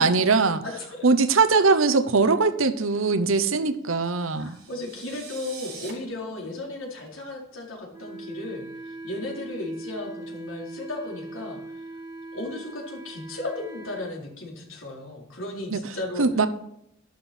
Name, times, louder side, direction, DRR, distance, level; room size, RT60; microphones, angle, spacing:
voice 1, 0.0-0.6 1.0-4.5 15.7-15.8 16.2-16.5, right 4 dB, 75° right, 10 dB, 0.9 m, -21 dB
voice 2, 0.6-1.1 4.4-11.8 12.3-16.2, left 2 dB, 75° left, -1 dB, 4.2 m, -35 dB
sound 1, 4.0-5.9, right 5 dB, 55° right, 4.5 m, -44 dB
Wind instrument woodwind instrument, 7.9-14.1, right 2 dB, 15° right, 2.1 m, -40 dB
11.5 x 11.5 x 4.4 m, 0.77 s
head